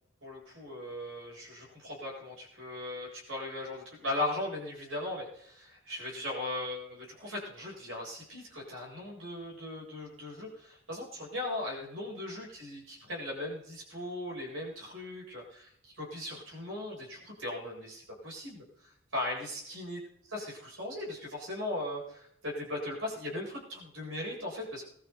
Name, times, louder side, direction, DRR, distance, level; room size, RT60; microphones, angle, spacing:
voice 1, 0.2-18.6 19.1-20.0 20.3-24.8, left 1 dB, 80° right, -3 dB, 7.9 m, -38 dB
21.5 x 13.5 x 4.1 m, 0.69 s
head